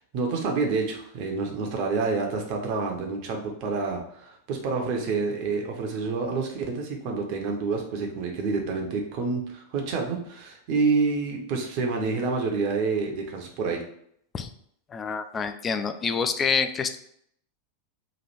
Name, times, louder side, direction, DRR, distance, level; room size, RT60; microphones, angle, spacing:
voice 1, 0.1-13.8, right 4 dB, 45° right, 2 dB, 0.7 m, -28 dB
voice 2, 14.9-17.0, left 5 dB, 20° left, 9 dB, 0.3 m, -27 dB
3.2 x 2.5 x 4.2 m, 0.68 s
figure-of-eight pair, 90°, 0 cm